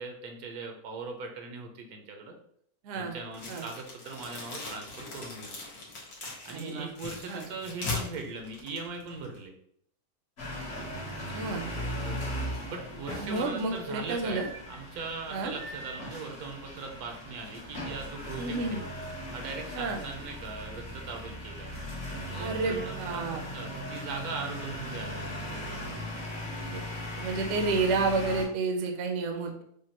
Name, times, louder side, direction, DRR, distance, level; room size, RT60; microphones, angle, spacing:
voice 1, 0.0-2.3 2.9-5.7 6.4-9.5 12.0-12.3 12.7-18.8 19.3-21.7 22.3-23.2 23.5-25.8, right 4 dB, 80° right, 3 dB, 1.2 m, -40 dB
voice 2, 2.8-3.1 3.5-3.6 6.5-6.9 7.3-7.4 11.0-11.7 13.2-14.5 15.3-15.5 18.4-18.8 19.7-20.0 22.4-23.4 23.7-23.8 26.6-26.8 27.2-29.6, right 3 dB, 60° right, 2 dB, 0.8 m, -30 dB
sound 1, 3.3-9.4, left 3 dB, 80° left, 1.5 m, -40 dB
sound 2, 10.4-28.5, equal, 55° left, 1.3 m, -38 dB
5.0 x 2.2 x 2.9 m, 0.68 s
omnidirectional pair, 1.6 m